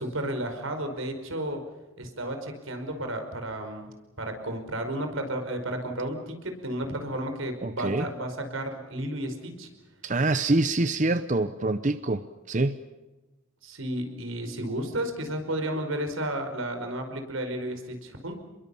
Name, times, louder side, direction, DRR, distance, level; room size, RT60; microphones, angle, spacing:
voice 1, 0.0-1.6 2.0-9.7 13.6-18.4, right 1 dB, 80° right, 6 dB, 5.2 m, -32 dB
voice 2, 7.6-8.1 10.0-12.2 12.5-12.8, right 2 dB, 40° right, 11 dB, 0.8 m, -25 dB
29.5 x 22.0 x 7.1 m, 1.1 s
head